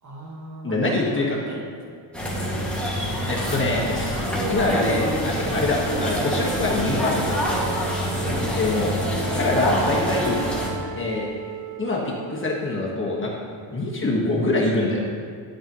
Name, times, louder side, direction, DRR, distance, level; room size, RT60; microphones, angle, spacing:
voice 1, 0.0-2.1, right 1 dB, 40° right, -2 dB, 1.7 m, -39 dB
voice 2, 0.6-1.4 3.3-7.6 8.6-9.0 9.3-10.4 11.0-11.3 11.8-13.3 13.7-15.0, left 2 dB, 25° left, -3 dB, 1.5 m, -24 dB
sound 1, 2.1-10.7, equal, ahead, 2.0 m, -26 dB
Wind instrument woodwind instrument, 5.3-13.9, right 6 dB, 65° right, 0.8 m, -37 dB
11.5 x 8.9 x 3.1 m, 2.1 s
cardioid pair, 135°, 47 cm